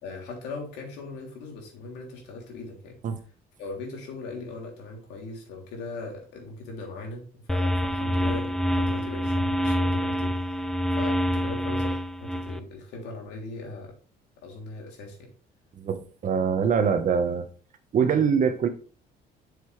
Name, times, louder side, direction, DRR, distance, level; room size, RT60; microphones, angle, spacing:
voice 1, 0.0-2.9 3.6-13.9 14.4-15.3, left 3 dB, 90° left, 3.2 m, -39 dB
sound 1, 7.5-12.6, equal, 5° left, 0.6 m, -26 dB
voice 2, 15.7-17.5 17.9-18.7, right 6 dB, 50° right, 1.2 m, -23 dB
7.9 x 6.9 x 3.3 m
cardioid pair, 110°, 17 cm